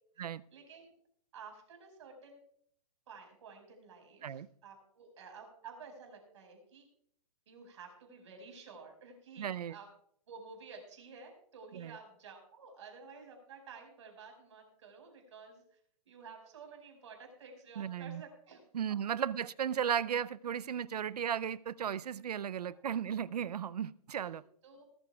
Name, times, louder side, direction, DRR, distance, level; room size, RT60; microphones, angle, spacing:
voice 1, 0.1-0.9 1.3-2.4 3.1-6.9 7.5-9.9 10.3-15.8 16.0-18.6 22.4-22.8 24.2-24.8, right 5 dB, 50° right, 3 dB, 5.2 m, -52 dB
voice 2, 9.4-9.7 11.7-12.0 17.8-18.2 18.7-24.4, right 9 dB, 80° right, 19 dB, 0.6 m, -35 dB
20.0 x 13.5 x 2.3 m, 0.66 s
hypercardioid pair, 170°, 20 cm